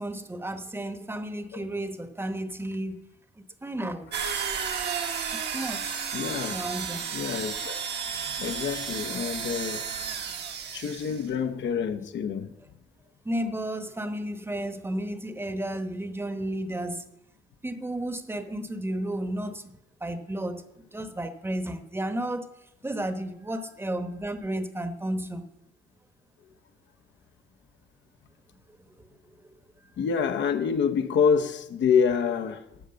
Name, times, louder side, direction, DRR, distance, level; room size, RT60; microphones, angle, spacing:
voice 1, 0.0-3.0 3.4-4.2 5.3-6.0 6.5-7.0 11.0-11.4 13.2-17.1 17.6-20.6 20.9-22.5 22.8-25.4 29.0-29.1, right 1 dB, 10° right, 1.0 m, -33 dB
sound 1, 4.1-11.3, right 7 dB, 60° right, 1.3 m, -33 dB
voice 2, 6.1-6.6 7.1-7.8 8.3-9.8 10.7-12.5 30.0-32.8, left 6 dB, 70° left, 0.9 m, -27 dB
12.0 x 5.1 x 7.7 m
cardioid pair, 90°, 20 cm